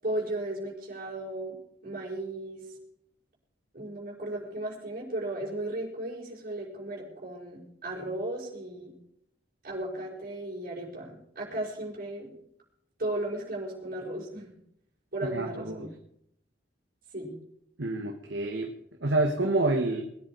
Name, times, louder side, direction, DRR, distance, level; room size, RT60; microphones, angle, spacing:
voice 1, 0.0-1.6 1.8-2.6 3.7-8.9 9.6-12.3 13.0-14.5 15.1-15.9 17.1-17.3, right 1 dB, 50° right, -5 dB, 5.7 m, -35 dB
voice 2, 15.3-15.9 17.8-18.7 19.0-20.0, right 2 dB, 90° right, 1 dB, 1.8 m, -28 dB
21.5 x 11.0 x 4.9 m, 0.72 s
head